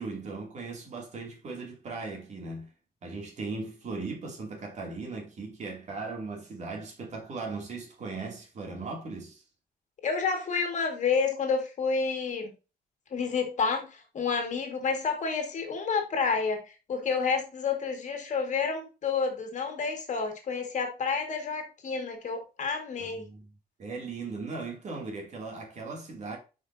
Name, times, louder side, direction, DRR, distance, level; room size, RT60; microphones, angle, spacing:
voice 1, 0.0-2.7 3.0-9.4 23.0-23.5 23.8-26.4, right 3 dB, 45° right, 2.7 m, -38 dB
voice 2, 10.0-12.5 13.1-16.6 16.9-23.2, left 5 dB, 50° left, 1.9 m, -29 dB
9.0 x 5.2 x 2.7 m
wide cardioid pair, 170°, 16 cm